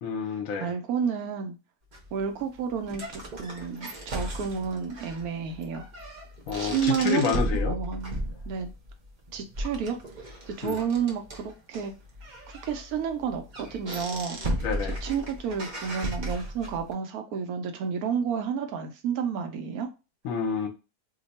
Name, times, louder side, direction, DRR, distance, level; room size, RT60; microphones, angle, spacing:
voice 1, 0.0-0.7 6.5-7.7 10.6-10.8 14.6-15.0 20.2-20.7, left 6 dB, 60° left, 1.0 m, -29 dB
voice 2, 0.6-1.6 2.1-5.9 6.6-8.2 8.5-8.7 9.3-10.0 10.5-11.9 12.6-14.4 14.8-19.9, right 7 dB, 70° right, 1.0 m, -30 dB
sound 1, 1.9-16.9, equal, 50° right, 0.5 m, -36 dB
2.8 x 2.2 x 4.0 m
omnidirectional pair, 1.7 m